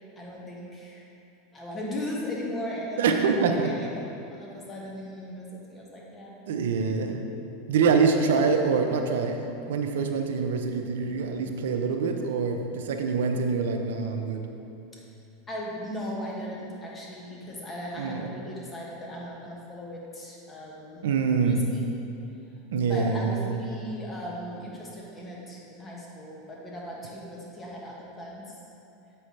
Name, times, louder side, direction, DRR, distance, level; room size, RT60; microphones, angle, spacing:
voice 1, 0.2-1.0 1.5-3.1 3.5-3.9 4.3-6.3 14.9-15.0 15.5-21.0 21.4-21.9 22.9-28.6, left 1 dB, 20° left, -3 dB, 1.5 m, -37 dB
voice 2, 3.0-3.7 6.5-7.2 7.7-14.4 18.0-18.3 21.0-21.7 22.7-23.6, right 5 dB, 85° right, 5 dB, 0.6 m, -25 dB
7.6 x 5.6 x 3.2 m, 2.8 s
supercardioid pair, 115°, 0 cm